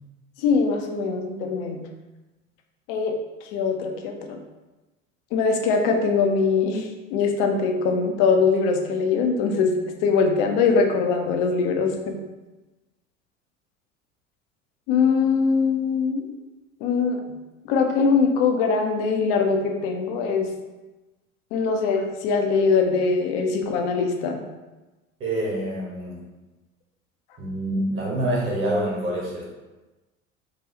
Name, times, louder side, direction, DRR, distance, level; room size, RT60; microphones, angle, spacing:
voice 1, 0.4-1.8 2.9-3.1 3.5-4.4 5.3-9.7 10.0-12.2 14.9-16.2 16.8-17.2 17.7-20.5 21.5-24.4, left 5 dB, 45° left, 3 dB, 0.6 m, -22 dB
voice 2, 25.2-26.2 27.4-29.4, right 1 dB, 30° right, -3 dB, 1.2 m, -26 dB
4.8 x 2.3 x 2.8 m, 1.1 s
figure-of-eight pair, 70°, 39 cm